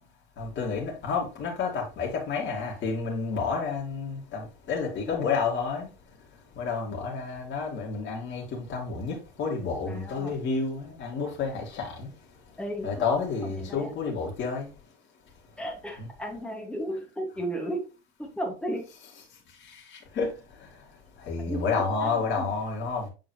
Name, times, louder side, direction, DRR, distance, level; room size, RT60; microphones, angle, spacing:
voice 1, 0.4-5.9 6.6-12.1 12.8-14.7 16.0-16.1 20.2-20.3 21.3-23.1, left 5 dB, 35° left, 2.6 m, -30 dB
voice 2, 9.9-10.3 12.6-13.1 13.6-13.9 15.6-17.9 18.2-18.9 21.4-22.5, equal, 5° left, 1.6 m, -34 dB
7.6 x 4.6 x 2.9 m
supercardioid pair, 125°, 32 cm